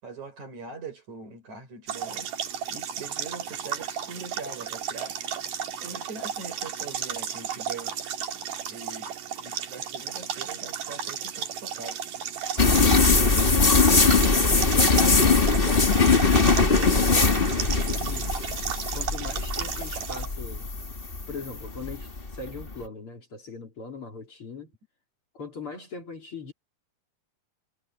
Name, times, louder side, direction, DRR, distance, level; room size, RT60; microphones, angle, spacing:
voice 1, 0.0-5.3 5.8-8.2 8.7-12.0, right 4 dB, 60° right, 8.4 m, -43 dB
sound 1, 1.9-20.3, right 8 dB, 80° right, 3.7 m, -34 dB
sound 2, 12.6-22.7, left 4 dB, 25° left, 1.3 m, -21 dB
voice 2, 14.6-18.3 18.9-20.7 21.3-24.7 25.3-26.5, left 4 dB, 40° left, 3.9 m, -40 dB
omnidirectional pair, 3.8 m